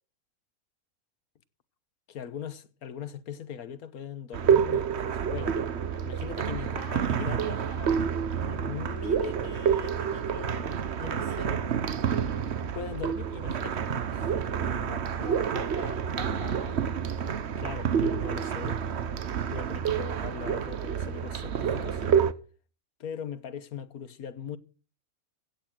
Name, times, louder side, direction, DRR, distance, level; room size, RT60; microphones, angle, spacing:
voice 1, 2.1-5.6 6.0-7.7 8.5-11.7 12.7-13.9 14.1-14.5 17.6-18.8 19.5-22.0 23.0-24.6, left 8 dB, 90° left, 1.6 m, -40 dB
sound 1, 4.3-22.3, right 7 dB, 55° right, 1.1 m, -28 dB
voice 2, 6.8-8.0 14.6-16.8, left 8 dB, 45° left, 1.2 m, -44 dB
16.0 x 9.7 x 6.3 m
omnidirectional pair, 1.5 m